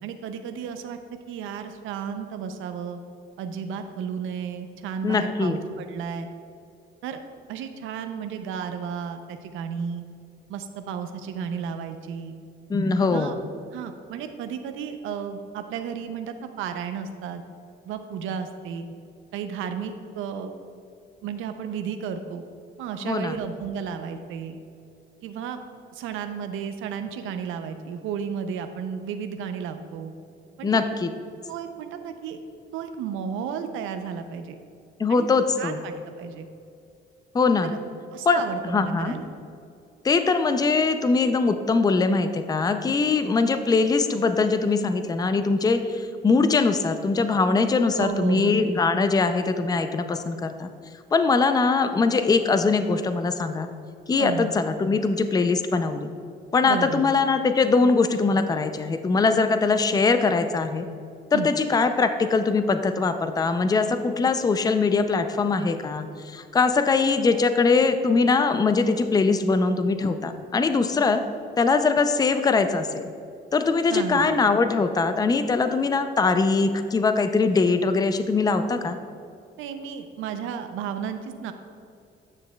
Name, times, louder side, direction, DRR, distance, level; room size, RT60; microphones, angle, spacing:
voice 1, 0.0-1.0 1.3-3.0 3.4-6.3 7.0-7.2 7.5-10.0 10.5-12.4 13.0-13.4 13.7-17.4 17.9-18.9 19.3-20.5 21.2-22.4 22.8-24.6 25.2-25.6 25.9-30.1 30.6-30.9 31.5-32.4 32.7-34.6 35.1-35.3 35.6-36.5 37.6-37.8 38.1-39.3 47.9-48.6 54.2-54.5 56.6-57.0 61.3-61.5 73.9-74.3 79.6-81.5, right 7 dB, 90° right, 8 dB, 0.5 m, -33 dB
voice 2, 5.0-5.6 12.7-13.4 23.0-23.3 30.6-31.1 35.0-35.8 37.3-37.7 38.3-39.1 40.0-50.7 51.1-53.7 54.1-56.1 56.5-60.9 61.3-71.2 71.6-73.1 73.5-79.0, left 4 dB, 20° left, 9 dB, 0.4 m, -22 dB
9.7 x 6.3 x 2.2 m, 2.4 s
cardioid pair, 90°, 20 cm